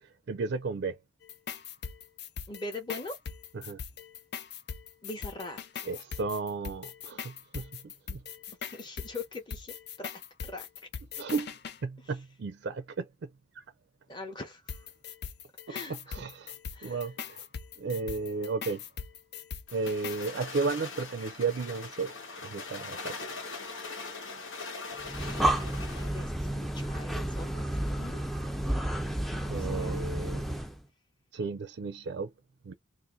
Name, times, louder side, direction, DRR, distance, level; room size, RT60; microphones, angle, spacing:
voice 1, 0.3-1.0 3.5-3.8 5.8-8.2 11.2-13.3 13.5-13.6 15.7-16.5 16.8-17.5 17.8-18.8 19.7-22.1 22.4-23.2 29.5-30.6 31.3-32.3 32.6-32.7, right 4 dB, 60° right, 0.4 m, -34 dB
sound 1, 1.2-11.8 14.7-20.3, left 7 dB, 55° left, 0.5 m, -41 dB
voice 2, 2.5-3.2 5.0-5.6 8.7-10.1 10.4-10.7 14.1-14.6 15.7-16.3 16.7-17.1 26.0-28.3 29.5-30.1, left 2 dB, 25° left, 0.9 m, -41 dB
sound 2, 19.7-26.2, left 4 dB, 85° left, 1.2 m, -41 dB
Breathing, 25.0-30.8, right 1 dB, ahead, 0.4 m, -31 dB
2.6 x 2.5 x 3.7 m
head